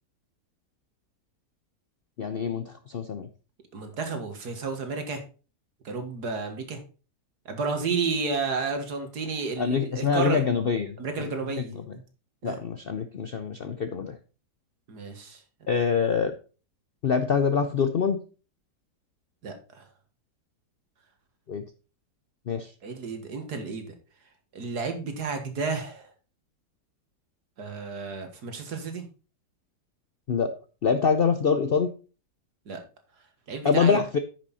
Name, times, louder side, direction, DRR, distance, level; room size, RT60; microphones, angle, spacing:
voice 1, 2.2-3.3 9.6-11.3 11.7-11.8 12.4-14.2 15.7-16.3 17.0-18.2 21.5-21.6 22.5-22.7 30.3-30.5 30.8-31.9 33.6-34.2, left 6 dB, 60° left, 9 dB, 0.6 m, -25 dB
voice 2, 3.7-5.2 5.9-6.8 7.5-10.4 11.0-12.0 12.4-12.6 14.9-15.4 19.4-19.8 22.8-23.9 24.5-26.1 27.6-29.1 32.7-32.8 33.5-34.0, right 4 dB, 70° right, 6 dB, 2.1 m, -32 dB
9.7 x 6.3 x 4.1 m, 0.35 s
omnidirectional pair, 1.8 m